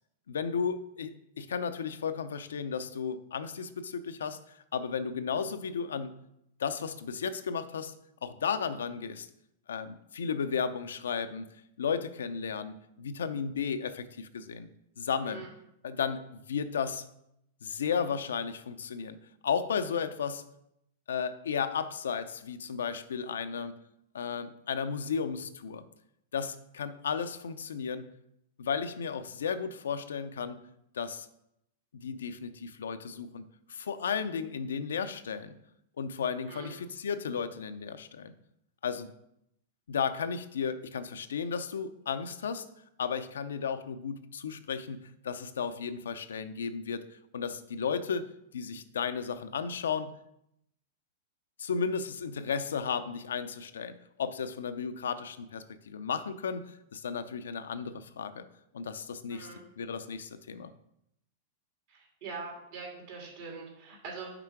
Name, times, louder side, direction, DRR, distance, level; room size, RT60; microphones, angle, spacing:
voice 1, 0.3-6.2 6.6-7.9 8.2-9.3 9.7-14.7 15.0-15.5 15.8-17.1 17.6-19.2 19.4-20.4 21.1-23.7 24.1-25.8 26.3-28.1 28.6-30.6 30.9-31.3 31.9-35.5 36.0-38.3 38.8-39.1 39.9-42.7 43.0-47.1 47.3-50.1 51.6-58.4 58.7-59.5 59.8-60.7, left 6 dB, 85° left, 11 dB, 0.5 m, -34 dB
voice 2, 36.4-36.7 59.3-59.6 61.9-64.3, right 4 dB, 60° right, -2 dB, 2.5 m, -43 dB
5.9 x 4.4 x 4.6 m, 0.78 s
hypercardioid pair, 115°, 0 cm